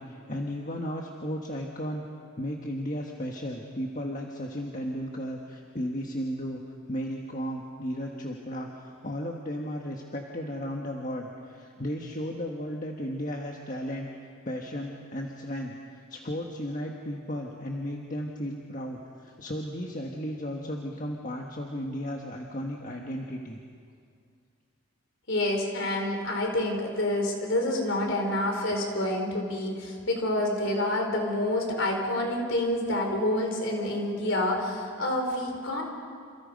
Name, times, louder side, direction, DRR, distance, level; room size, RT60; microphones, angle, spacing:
voice 1, 0.0-2.1 2.4-6.6 6.9-14.1 14.4-23.6, equal, 35° left, 0 dB, 1.5 m, -34 dB
voice 2, 25.3-35.8, left 1 dB, 60° left, 2 dB, 4.4 m, -28 dB
28.5 x 28.0 x 5.3 m, 2.2 s
head